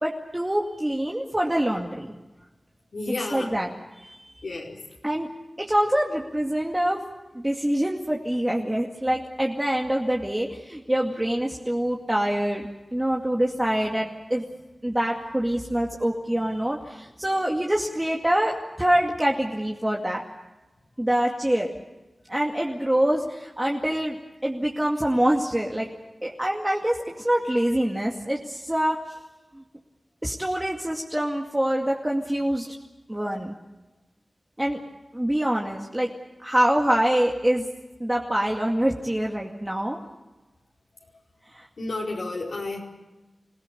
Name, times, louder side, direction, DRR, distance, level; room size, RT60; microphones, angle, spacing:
voice 1, 0.0-2.1 3.3-3.7 4.0-4.3 5.0-5.3 5.6-7.0 7.3-14.4 14.8-20.2 21.0-21.7 22.3-24.2 24.4-25.9 26.2-29.0 29.5-29.6 30.2-32.7 33.1-33.6 34.6-34.8 35.1-36.1 36.4-37.7 38.0-40.0 41.5-41.7, right 1 dB, 15° right, -1 dB, 2.3 m, -25 dB
voice 2, 2.9-3.5 4.4-4.8 41.8-42.8, left 2 dB, 75° left, -4 dB, 4.8 m, -31 dB
27.0 x 17.0 x 8.5 m, 1.1 s
wide cardioid pair, 70°, 0 cm